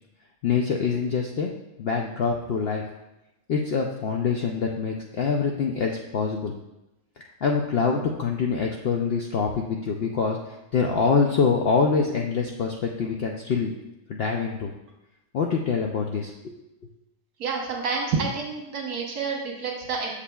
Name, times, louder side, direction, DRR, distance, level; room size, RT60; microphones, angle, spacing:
voice 1, 0.4-1.5 1.8-2.8 3.5-6.5 7.4-13.7 14.1-14.7 15.3-16.5, left 5 dB, 75° left, 1 dB, 0.5 m, -25 dB
voice 2, 17.4-20.1, right 4 dB, 80° right, -1 dB, 1.6 m, -28 dB
7.3 x 6.7 x 2.3 m, 0.94 s
omnidirectional pair, 1.6 m